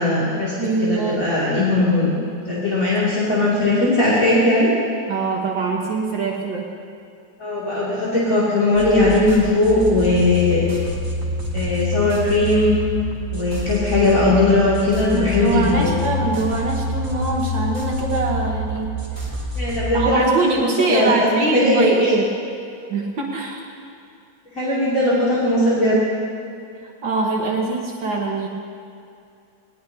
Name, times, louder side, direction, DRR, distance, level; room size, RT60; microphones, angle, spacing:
voice 1, 0.0-0.5 0.8-2.1 2.5-4.7 7.4-10.6 11.5-12.8 13.3-15.9 19.6-21.2 21.5-21.9 24.5-26.0, left 2 dB, 45° left, -9 dB, 3.2 m, -18 dB
voice 2, 0.6-1.2 5.1-6.6 15.1-18.9 19.9-22.3 22.9-23.6 27.0-28.5, right 3 dB, 75° right, -2 dB, 2.1 m, -23 dB
sound 1, 8.7-20.0, left 1 dB, 15° right, 2.8 m, -27 dB
20.5 x 19.5 x 2.9 m, 2.5 s
omnidirectional pair, 2.1 m